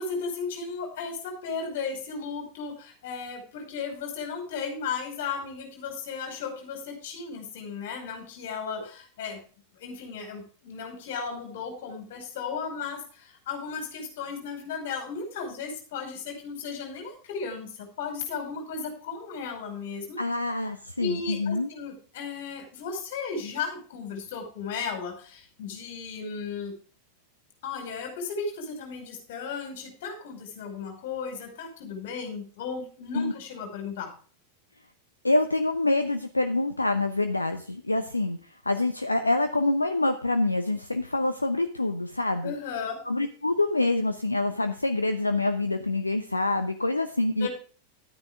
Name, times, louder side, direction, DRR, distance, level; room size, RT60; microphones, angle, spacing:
voice 1, 0.0-9.4 9.8-20.2 21.0-26.7 27.6-34.1 42.4-43.0 47.4-47.5, left 5 dB, 55° left, 3 dB, 5.2 m, -35 dB
voice 2, 20.2-21.7 33.1-33.3 35.2-38.4 38.6-42.5 43.1-47.5, left 2 dB, 80° left, 8 dB, 0.8 m, -26 dB
12.0 x 9.8 x 3.6 m, 0.40 s
figure-of-eight pair, 90°, 0 cm